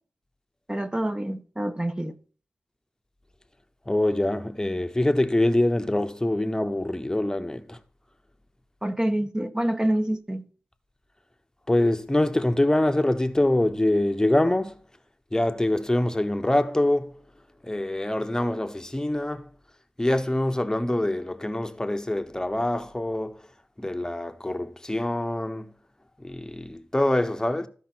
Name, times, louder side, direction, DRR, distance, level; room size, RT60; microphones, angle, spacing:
voice 1, 0.7-2.2 8.8-10.5, right 1 dB, 20° right, 1.1 m, -27 dB
voice 2, 3.9-7.8 11.7-14.8 15.3-17.1 17.6-19.5 20.0-23.4 23.8-25.7 26.2-27.7, left 1 dB, 15° left, 1.1 m, -24 dB
14.0 x 5.4 x 6.1 m
cardioid pair, 50°, 4 cm